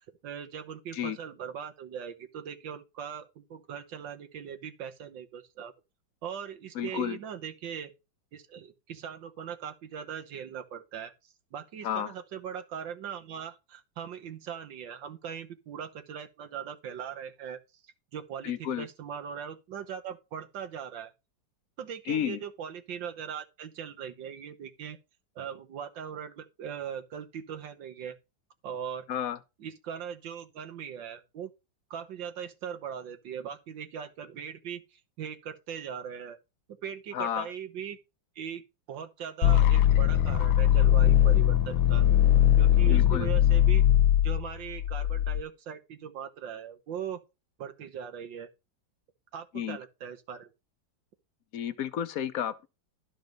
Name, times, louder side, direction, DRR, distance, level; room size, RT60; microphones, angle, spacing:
voice 1, 0.2-5.7 6.2-7.9 8.3-11.1 11.5-17.6 18.1-21.1 21.8-25.0 25.3-28.2 28.6-29.1 29.6-31.5 31.9-36.4 36.8-38.0 38.3-38.6 38.9-42.1 42.6-43.8 44.2-47.2 47.6-48.5 49.3-50.5, right 8 dB, 75° right, 1.8 m, -40 dB
voice 2, 6.7-7.2 11.8-12.1 18.4-18.9 22.1-22.4 29.1-29.4 37.1-37.5 42.9-43.3 49.5-49.8 51.5-52.7, left 10 dB, 65° left, 0.9 m, -31 dB
sound 1, 39.4-45.4, left 11 dB, 90° left, 1.5 m, -21 dB
12.0 x 4.9 x 5.2 m
omnidirectional pair, 2.1 m